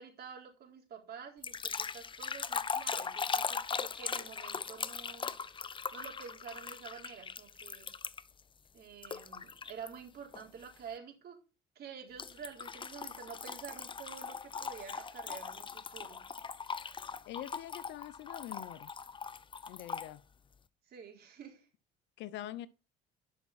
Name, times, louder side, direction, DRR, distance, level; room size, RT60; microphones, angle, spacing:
voice 1, 0.0-5.3 5.9-7.9 8.7-11.4 11.8-16.2 20.9-21.7, right 7 dB, 55° right, 3.8 m, -49 dB
sound 1, 1.4-8.4 9.0-9.9 10.3-10.6 12.2-20.1, left 6 dB, 25° left, 0.6 m, -40 dB
voice 2, 17.3-18.9 19.7-20.2 22.2-22.7, left 13 dB, 65° left, 0.8 m, -44 dB
11.5 x 5.9 x 4.3 m
supercardioid pair, 75°, 20 cm